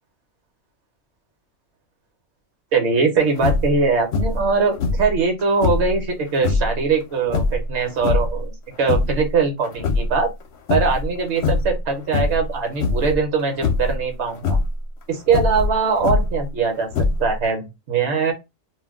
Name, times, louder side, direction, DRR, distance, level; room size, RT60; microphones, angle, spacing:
voice 1, 2.7-10.3 10.7-14.6 15.1-16.9 17.2-18.3, right 4 dB, 70° right, 5 dB, 1.0 m, -21 dB
sound 1, 3.4-3.8 4.1-4.5 4.8-5.9 6.4-6.7 7.3-8.4 8.7-9.3 9.6-10.4 10.7-11.1 11.4-11.8 12.1-12.5 12.8-13.2 13.6-14.0 14.4-14.7 15.3-16.4 16.9-17.5, left 3 dB, 70° left, 0.9 m, -22 dB
2.4 x 2.2 x 3.4 m, 0.23 s
omnidirectional pair, 1.2 m